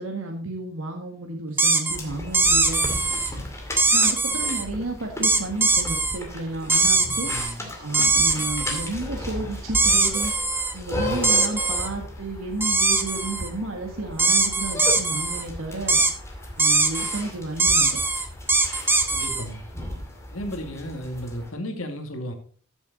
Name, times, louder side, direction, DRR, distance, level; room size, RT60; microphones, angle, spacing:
voice 1, 0.0-2.8 3.9-7.3 7.8-10.3 10.7-16.0 16.6-18.0, right 2 dB, 80° right, 1.7 m, -32 dB
sound 1, 1.6-2.0 2.3-3.3 3.8-4.6 5.2-6.2 6.7-7.5 7.9-8.9 9.7-10.7 11.2-11.9 12.6-13.5 14.2-15.4 15.9-16.1 16.6-17.2 17.6-19.4, right 3 dB, 10° right, 1.0 m, -21 dB
sound 2, 1.9-21.5, left 1 dB, 15° left, 2.4 m, -36 dB
voice 2, 7.2-7.6 19.1-19.6 20.3-22.3, equal, 80° left, 2.2 m, -34 dB
13.5 x 7.1 x 4.1 m
head